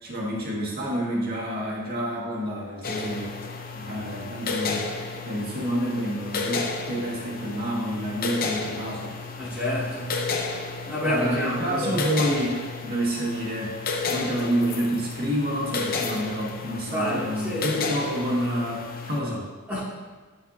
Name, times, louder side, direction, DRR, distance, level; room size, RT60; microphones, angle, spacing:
voice 1, 0.0-3.3 3.7-4.9 5.2-9.2 11.0-13.8 14.1-19.5, equal, 45° right, -4 dB, 2.0 m, -28 dB
sound 1, 2.8-19.2, left 4 dB, 40° left, 0.7 m, -32 dB
voice 2, 9.4-10.3 10.9-12.0 16.9-17.7 19.7-19.8, equal, 10° right, -12 dB, 2.6 m, -29 dB
13.0 x 5.9 x 2.8 m, 1.4 s
head